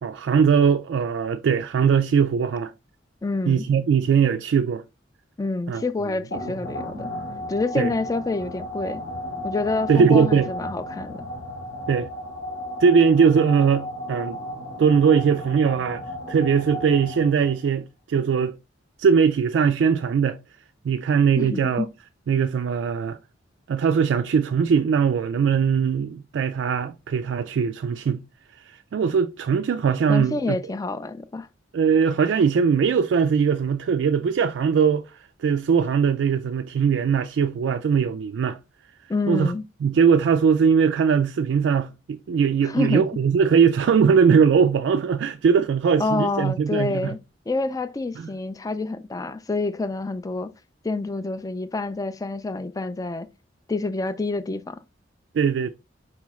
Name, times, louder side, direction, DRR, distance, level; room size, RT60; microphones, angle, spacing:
voice 1, 0.0-2.7 3.5-4.8 5.7-5.8 7.8-7.9 9.9-10.5 11.9-12.1 12.8-14.4 14.8-18.6 19.0-20.4 20.8-21.9 22.3-23.2 23.7-28.2 28.6-30.6 31.7-38.6 39.3-39.5 39.8-47.1 48.2-48.3 55.3-55.7, right 6 dB, 70° right, 0.3 m, -20 dB
voice 2, 3.2-3.7 5.4-7.1 7.5-9.0 9.4-11.3 21.4-21.9 30.1-31.5 39.1-39.6 42.6-43.0 46.0-47.2 47.5-50.5 50.8-53.3 53.7-54.8, left 3 dB, 20° left, 0.4 m, -27 dB
sound 1, 6.3-17.7, equal, 85° left, 2.0 m, -34 dB
4.8 x 3.0 x 3.5 m
head